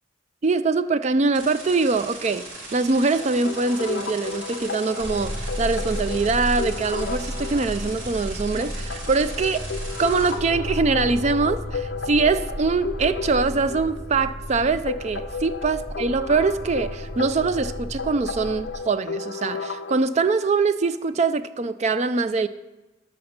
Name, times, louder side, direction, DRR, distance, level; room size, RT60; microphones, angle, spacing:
voice 1, 0.4-2.5 2.7-9.7 10.0-22.5, right 4 dB, 35° right, 12 dB, 0.3 m, -23 dB
sound 1, 1.3-10.3, right 2 dB, 65° right, 3.2 m, -39 dB
sound 2, 3.1-20.0, left 4 dB, 55° left, 0.5 m, -34 dB
sound 3, 5.0-18.7, equal, 10° right, 2.5 m, -33 dB
13.0 x 4.3 x 6.5 m, 1.1 s
head